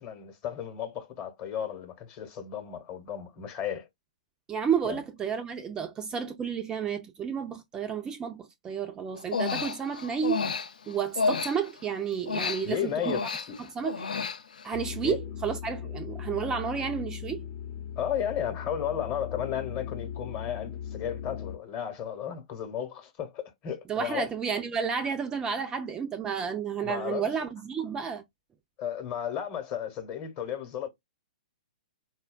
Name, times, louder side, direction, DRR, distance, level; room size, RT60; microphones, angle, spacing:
voice 1, 0.0-3.9 4.8-5.0 12.6-13.6 15.0-15.2 18.0-24.3 26.8-27.3 28.8-30.9, left 9 dB, 35° left, 0.9 m, -34 dB
voice 2, 4.5-10.5 10.9-13.2 13.8-14.1 14.6-17.4 23.9-28.2, right 7 dB, 15° right, 0.3 m, -31 dB
Human voice, 9.2-11.9 12.3-14.8, left 5 dB, 80° left, 0.4 m, -31 dB
sound 1, 14.7-21.6, left 9 dB, 60° left, 0.8 m, -38 dB
4.2 x 2.2 x 2.2 m
hypercardioid pair, 130°, 4 cm